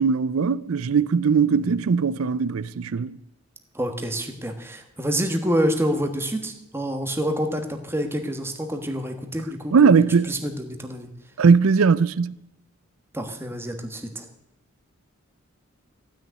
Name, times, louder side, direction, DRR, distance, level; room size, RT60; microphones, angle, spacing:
voice 1, 0.0-3.2 9.7-10.4 11.4-12.4, right 5 dB, 80° right, 0.5 m, -19 dB
voice 2, 3.7-11.1 13.1-14.3, equal, 10° right, 1.4 m, -27 dB
15.5 x 6.5 x 9.5 m
head